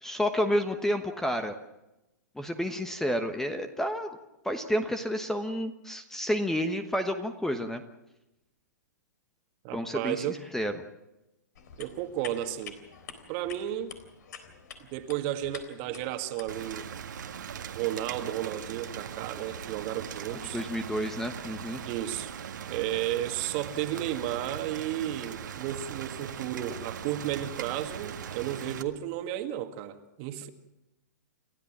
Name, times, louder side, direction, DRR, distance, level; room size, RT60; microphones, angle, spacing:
voice 1, 0.0-1.5 2.4-4.1 4.4-7.8 9.7-10.7 20.5-21.8, equal, 5° left, 8 dB, 1.2 m, -30 dB
voice 2, 9.6-10.4 11.8-12.8 13.3-14.0 14.9-16.9 17.7-20.6 21.8-22.3 22.7-30.5, right 12 dB, 40° right, 8 dB, 2.0 m, -33 dB
sound 1, 11.5-16.7, left 7 dB, 65° left, 3.8 m, -48 dB
Rain, 16.5-28.8, right 8 dB, 80° right, 1.8 m, -40 dB
29.0 x 13.5 x 7.4 m, 0.95 s
hypercardioid pair, 140°, 10 cm